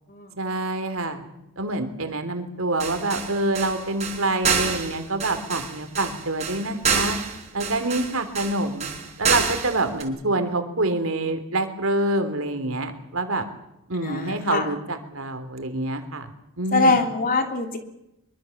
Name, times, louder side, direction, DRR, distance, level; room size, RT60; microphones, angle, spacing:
voice 1, 0.4-1.2 1.6-7.2 7.5-8.9 9.2-13.4 13.9-16.3 16.6-17.0, right 2 dB, 65° right, 8 dB, 3.4 m, -26 dB
sound 1, 2.8-10.0, right 6 dB, 30° right, 4.9 m, -27 dB
voice 2, 14.0-14.7 16.7-17.8, left 3 dB, 40° left, 5 dB, 3.1 m, -23 dB
24.0 x 23.0 x 7.3 m, 0.88 s
head